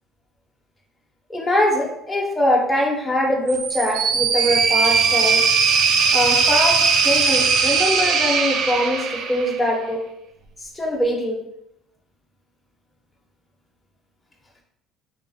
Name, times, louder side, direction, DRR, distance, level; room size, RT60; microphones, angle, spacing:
voice 1, 1.3-5.4 6.1-10.0 10.8-11.4, left 1 dB, 15° left, -1 dB, 0.6 m, -22 dB
sound 1, 3.5-9.7, right 5 dB, 65° right, 0.3 m, -19 dB
2.7 x 2.4 x 2.5 m, 0.81 s
supercardioid pair, 90°, 0 cm